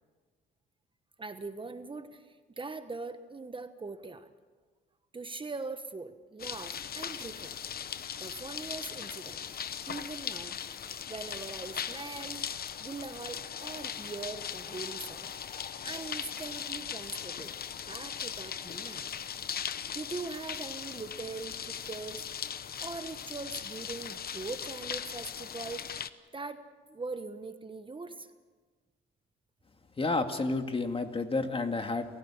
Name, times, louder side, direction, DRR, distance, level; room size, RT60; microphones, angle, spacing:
voice 1, 1.2-4.3 5.1-7.6 8.2-9.4 9.9-10.6 11.1-12.5 12.8-15.3 15.8-17.5 17.9-19.1 19.9-22.2 22.8-26.1 26.3-26.6 26.9-28.3, right 3 dB, 25° right, 9 dB, 1.2 m, -41 dB
sound 1, 6.4-26.1, left 8 dB, 50° left, 1.0 m, -39 dB
voice 2, 30.0-32.1, left 3 dB, 30° left, 6 dB, 2.1 m, -30 dB
29.0 x 16.0 x 7.2 m, 1.4 s
cardioid pair, 90°, 20 cm